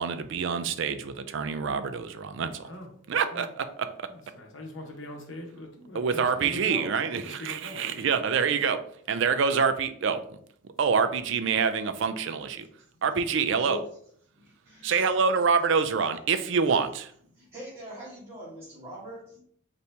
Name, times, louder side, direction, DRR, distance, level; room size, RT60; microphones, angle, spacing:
voice 1, 0.0-2.7 3.1-4.1 5.9-10.2 10.8-12.7 13.0-13.8 14.8-17.1, right 5 dB, 60° right, 10 dB, 0.4 m, -26 dB
voice 2, 4.3-6.9 7.2-8.1, left 1 dB, 60° left, 1 dB, 0.9 m, -41 dB
voice 3, 14.3-15.1 17.3-19.4, equal, 30° right, -10 dB, 1.4 m, -42 dB
4.1 x 2.8 x 3.3 m, 0.63 s
head